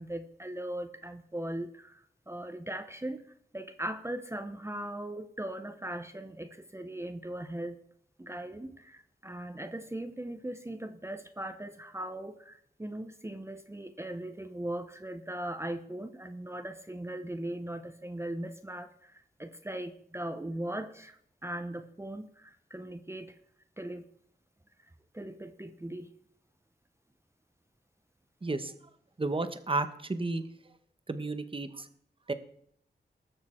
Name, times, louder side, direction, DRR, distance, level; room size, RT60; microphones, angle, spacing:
voice 1, 0.0-3.2 3.5-7.8 8.2-23.4 23.8-24.0 25.1-26.1, right 1 dB, 15° right, 8 dB, 0.8 m, -39 dB
voice 2, 28.4-28.7 29.2-30.4 31.1-31.9 32.3-32.4, right 2 dB, 30° right, 10 dB, 1.0 m, -32 dB
20.0 x 6.7 x 4.4 m, 0.65 s
wide cardioid pair, 100°, 18 cm